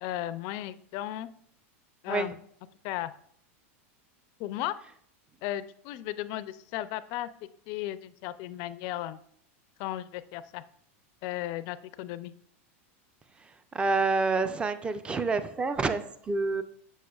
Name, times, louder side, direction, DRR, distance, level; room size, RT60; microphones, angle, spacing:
voice 1, 0.0-1.3 2.0-2.4 2.8-3.1 4.4-4.8 5.4-7.3 7.7-9.2 9.8-10.6 11.2-12.3, left 14 dB, 50° left, 14 dB, 0.4 m, -35 dB
voice 2, 13.7-16.6, right 3 dB, 15° right, 11 dB, 0.4 m, -28 dB
6.4 x 6.3 x 2.3 m, 0.63 s
supercardioid pair, 130°, 7 cm